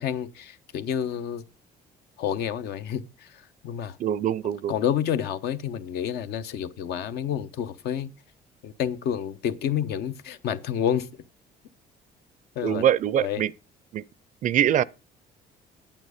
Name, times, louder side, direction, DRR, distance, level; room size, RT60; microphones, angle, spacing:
voice 1, 0.0-1.5 2.2-4.0 4.7-8.1 8.6-11.2 12.5-12.8 13.2-13.4, left 9 dB, 75° left, 0.8 m, -29 dB
voice 2, 4.0-4.7 12.6-13.5 13.9-14.0 14.4-14.8, right 10 dB, 50° right, 0.4 m, -23 dB
9.0 x 8.5 x 4.9 m
cardioid pair, 110°, 17 cm